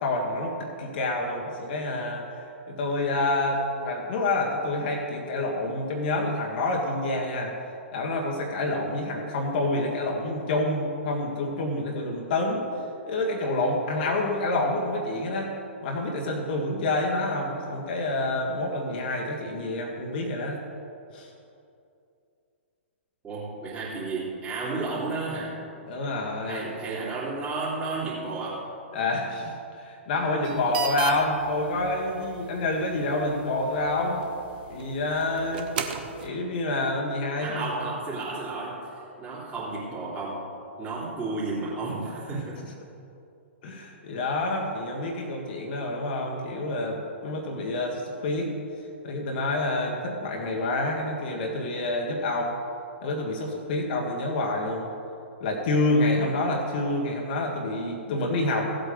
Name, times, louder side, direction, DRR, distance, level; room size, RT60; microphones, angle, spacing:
voice 1, 0.0-7.5 7.9-12.7 13.1-15.6 15.8-20.6 21.1-21.3 25.9-26.7 28.9-34.3 34.7-35.7 36.2-37.7 42.3-42.4 43.6-48.5 49.0-52.6 53.0-54.9 55.4-58.7, left 2 dB, 45° left, 0 dB, 1.6 m, -28 dB
voice 2, 23.2-25.6 26.5-28.7 37.4-38.9 39.2-40.5 40.8-42.6, right 3 dB, 15° right, -8 dB, 3.1 m, -32 dB
sound 1, 30.4-36.3, right 7 dB, 45° right, 1.0 m, -37 dB
16.0 x 8.0 x 5.2 m, 2.6 s
figure-of-eight pair, 115°, 7 cm